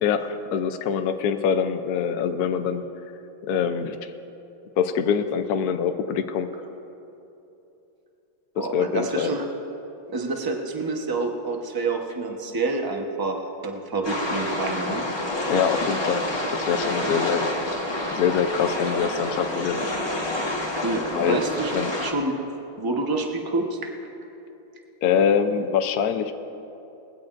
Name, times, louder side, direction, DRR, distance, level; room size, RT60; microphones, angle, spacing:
voice 1, 0.0-2.8 3.5-4.1 4.8-6.5 8.6-9.3 15.5-16.2 16.5-17.5 18.1-19.9 21.1-21.4 21.7-21.9 25.0-26.3, left 7 dB, 65° left, 7 dB, 1.0 m, -24 dB
voice 2, 8.6-9.4 10.1-15.0 20.8-21.8 22.0-22.3 22.8-23.8, right 3 dB, 20° right, 2 dB, 0.7 m, -27 dB
sound 1, 14.0-22.1, left 1 dB, 15° left, 1.1 m, -28 dB
21.0 x 16.0 x 2.6 m, 2.9 s
omnidirectional pair, 2.2 m